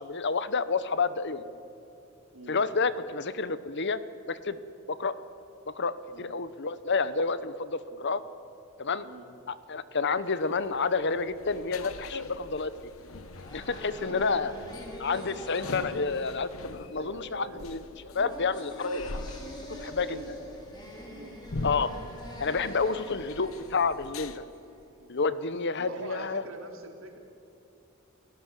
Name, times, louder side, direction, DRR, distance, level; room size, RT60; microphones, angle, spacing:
voice 1, 0.0-1.4 2.5-4.0 4.3-4.6 4.9-5.1 5.7-8.2 8.8-9.0 9.7-12.7 13.5-14.5 15.0-17.8 18.1-19.1 19.8-20.2 21.6-21.9 22.4-24.4 25.1-26.4, left 4 dB, 55° left, 14 dB, 1.0 m, -29 dB
sound 1, 10.2-24.4, left 2 dB, 80° left, 1.1 m, -42 dB
sound 2, 13.0-24.9, equal, 20° left, 4.9 m, -45 dB
voice 2, 14.0-14.9 15.3-15.5 16.9-17.9 19.7-20.3 21.0-21.7 25.0-25.1 25.8-27.2, right 2 dB, 70° right, 3 dB, 3.2 m, -45 dB
29.5 x 17.5 x 7.6 m, 2.7 s
head